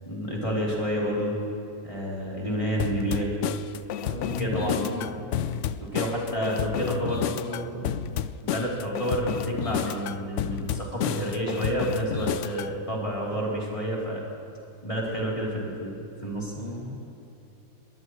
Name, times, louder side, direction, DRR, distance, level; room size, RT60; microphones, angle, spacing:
voice 1, 0.0-1.4 1.8-3.3 4.4-4.9 5.9-7.6 8.4-14.2 14.8-15.9 16.2-16.5, equal, 20° left, -5 dB, 3.5 m, -29 dB
sound 1, 2.8-12.7, left 10 dB, 80° left, 0.6 m, -31 dB
voice 2, 4.0-5.2 7.3-7.9 13.3-13.4 16.5-17.0, left 1 dB, 25° right, -3 dB, 1.8 m, -35 dB
22.5 x 19.5 x 3.2 m, 2.7 s
omnidirectional pair, 1.8 m